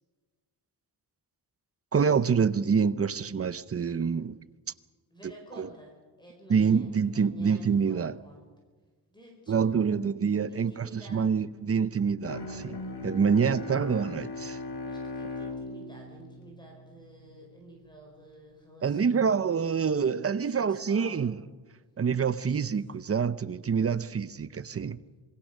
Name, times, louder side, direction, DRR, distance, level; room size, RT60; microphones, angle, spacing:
voice 1, 1.9-4.4 5.6-5.7 6.5-8.2 9.5-14.6 18.8-21.4 22.0-25.0, right 6 dB, 35° right, 0.7 m, -26 dB
voice 2, 5.1-8.4 9.1-10.0 10.5-11.3 14.8-21.4 22.5-22.7, right 1 dB, 10° left, 4.7 m, -51 dB
Bowed string instrument, 12.2-17.3, left 3 dB, 75° left, 3.0 m, -39 dB
26.5 x 20.5 x 6.6 m
wide cardioid pair, 165°, 39 cm